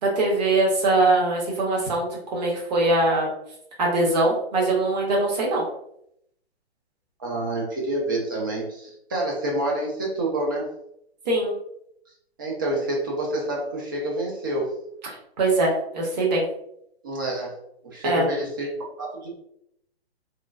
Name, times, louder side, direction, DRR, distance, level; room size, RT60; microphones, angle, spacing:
voice 1, 0.0-3.3 3.8-5.6 11.3-11.5 15.4-16.4 18.0-18.2, right 2 dB, 40° right, -2 dB, 1.0 m, -22 dB
voice 2, 7.2-10.7 12.4-14.7 17.0-17.6 17.8-18.7 19.0-19.3, right 1 dB, 20° right, -2 dB, 0.4 m, -28 dB
3.0 x 2.3 x 2.3 m, 0.75 s
hypercardioid pair, 145°, 33 cm